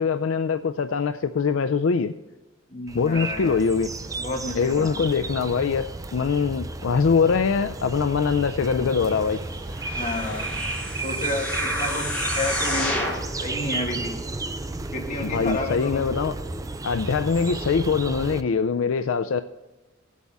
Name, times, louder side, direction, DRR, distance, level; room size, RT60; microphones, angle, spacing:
voice 1, 0.0-2.1 2.9-3.9 4.5-9.4 15.2-16.3 16.8-19.4, left 5 dB, 75° left, 0.4 m, -23 dB
voice 2, 2.7-3.6 4.2-5.0 9.9-10.5 11.0-13.0 13.4-14.2 14.9-16.1, left 2 dB, 40° left, 2.3 m, -31 dB
sound 1, 2.9-18.4, right 3 dB, 15° right, 0.5 m, -33 dB
sound 2, 9.7-13.3 13.9-14.0, left 1 dB, 5° left, 4.0 m, -29 dB
17.0 x 8.3 x 3.6 m
head